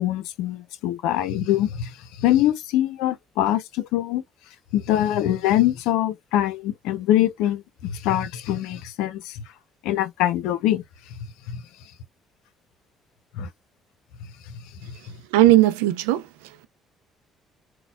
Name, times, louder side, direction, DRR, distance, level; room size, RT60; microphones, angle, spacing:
voice 1, 0.0-4.2 4.7-9.4 9.8-10.8 11.1-11.2 11.5-11.6 13.4-13.5 14.5-14.9, left 12 dB, 80° left, 0.6 m, -24 dB
voice 2, 15.3-16.3, right 15 dB, 85° right, 0.5 m, -17 dB
4.0 x 2.3 x 2.3 m
hypercardioid pair, 60°, 0 cm